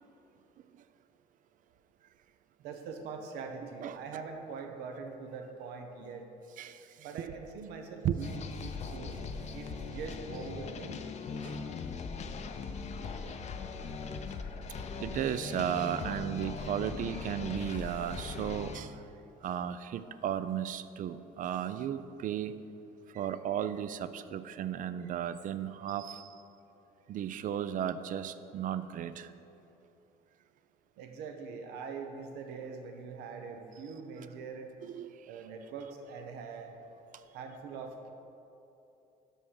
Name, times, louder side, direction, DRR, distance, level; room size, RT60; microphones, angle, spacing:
voice 1, 2.6-6.3 7.0-11.0 14.7-14.8 31.0-34.7 35.3-36.7 37.3-38.1, right 5 dB, 80° right, 5 dB, 0.7 m, -43 dB
sound 1, 8.2-18.8, left 4 dB, 40° left, 0.6 m, -40 dB
voice 2, 15.0-18.9 19.4-22.6 23.1-26.3 27.1-29.3 34.8-35.1, right 10 dB, 55° right, 12 dB, 0.4 m, -35 dB
5.7 x 5.4 x 6.4 m, 2.9 s
supercardioid pair, 85°, 17 cm